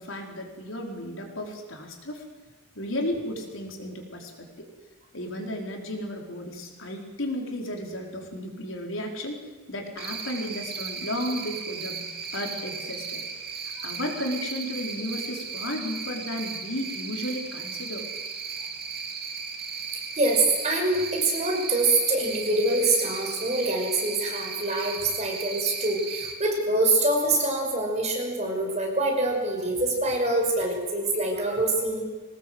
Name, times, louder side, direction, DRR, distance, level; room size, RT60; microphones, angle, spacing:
voice 1, 0.0-2.2 2.7-4.7 5.1-9.4 9.7-12.1 12.3-13.2 13.6-18.1, left 1 dB, 85° left, 2 dB, 4.4 m, -34 dB
Cricket, 10.0-26.3, right 5 dB, 50° right, 3.0 m, -36 dB
voice 2, 20.1-32.0, right 2 dB, 35° right, 1 dB, 5.9 m, -25 dB
23.0 x 19.0 x 7.9 m, 1.3 s
head